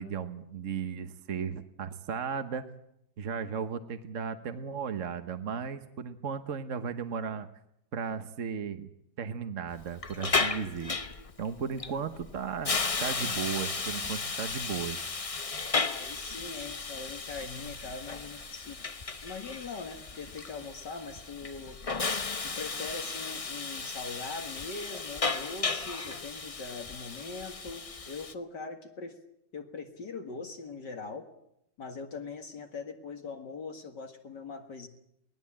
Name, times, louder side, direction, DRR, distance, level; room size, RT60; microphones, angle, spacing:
voice 1, 0.0-2.6 3.2-7.5 7.9-8.9 9.2-10.9 11.4-15.1, right 6 dB, 45° right, 9 dB, 1.3 m, -35 dB
Hiss, 9.7-28.3, left 4 dB, 35° left, 0.5 m, -34 dB
voice 2, 15.8-18.8 19.2-21.8 22.4-29.2 29.5-31.3 31.8-34.9, left 4 dB, 65° left, 4 dB, 2.4 m, -41 dB
22.5 x 18.5 x 8.7 m, 0.79 s
omnidirectional pair, 2.0 m